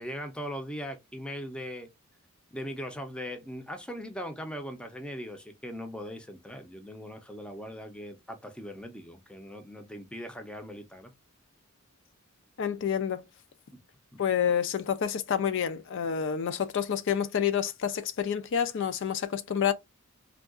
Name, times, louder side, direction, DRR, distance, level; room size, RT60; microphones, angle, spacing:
voice 1, 0.0-1.9 2.5-11.1 14.1-14.2, equal, 5° left, 0.5 m, -40 dB
voice 2, 12.6-13.2 14.2-19.7, left 8 dB, 60° left, 0.4 m, -28 dB
3.5 x 2.3 x 2.3 m
head